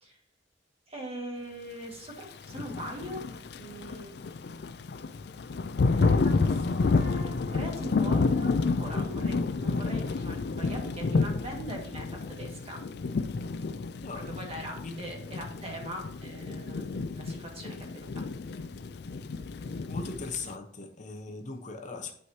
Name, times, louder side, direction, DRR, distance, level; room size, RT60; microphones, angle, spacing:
voice 1, 0.9-3.2 3.6-4.1 5.8-12.8 14.4-18.2 19.7-19.8, equal, 35° right, 0 dB, 1.9 m, -41 dB
Thunder / Rain, 2.4-20.5, left 4 dB, 65° left, 0.4 m, -30 dB
voice 2, 19.9-22.1, left 3 dB, 45° left, 3 dB, 1.0 m, -39 dB
11.0 x 4.8 x 2.8 m, 0.66 s
head